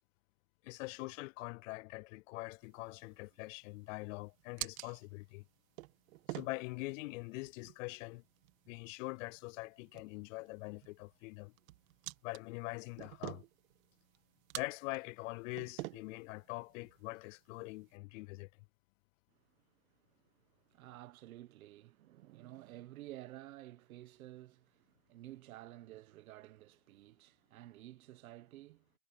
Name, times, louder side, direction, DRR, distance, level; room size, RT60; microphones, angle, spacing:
voice 1, 0.6-5.4 6.3-8.2 8.7-11.5 12.2-13.4 14.5-18.5, left 24 dB, 70° left, 0.5 m, -44 dB
sound 1, 2.6-18.0, right 19 dB, 75° right, 1.9 m, -51 dB
voice 2, 20.0-28.9, right 15 dB, 90° right, 1.2 m, -53 dB
supercardioid pair, 135°, 41 cm